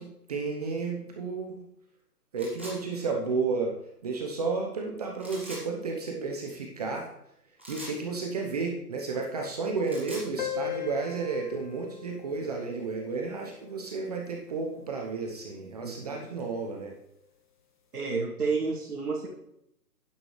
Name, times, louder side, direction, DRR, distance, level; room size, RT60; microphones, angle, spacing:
voice 1, 0.0-1.6 2.3-3.7 4.0-7.1 7.7-16.9, right 4 dB, 25° right, 1 dB, 0.9 m, -32 dB
sound 1, 2.4-2.8 5.2-5.6 7.6-8.0 9.7-10.3, right 1 dB, 10° right, 0.6 m, -42 dB
sound 2, 10.4-15.4, left 11 dB, 30° left, 1.0 m, -40 dB
voice 2, 15.8-16.2 17.9-19.3, right 4 dB, 65° right, -5 dB, 2.5 m, -30 dB
12.0 x 9.8 x 3.2 m, 0.77 s
figure-of-eight pair, 150°, 48 cm